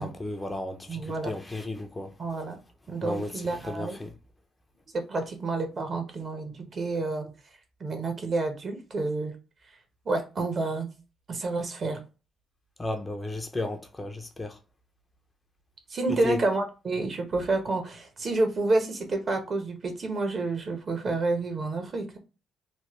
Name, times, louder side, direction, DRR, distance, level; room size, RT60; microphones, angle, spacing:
voice 1, 0.0-2.1 3.0-4.1 12.8-14.6 16.1-16.4, left 2 dB, 20° left, 0.5 m, -34 dB
voice 2, 0.9-1.3 2.2-2.6 2.9-4.0 4.9-7.3 7.8-9.3 10.1-10.9 11.3-12.0 15.9-22.2, right 3 dB, 45° right, 0.9 m, -29 dB
3.1 x 2.0 x 3.0 m
cardioid pair, 90°, 0 cm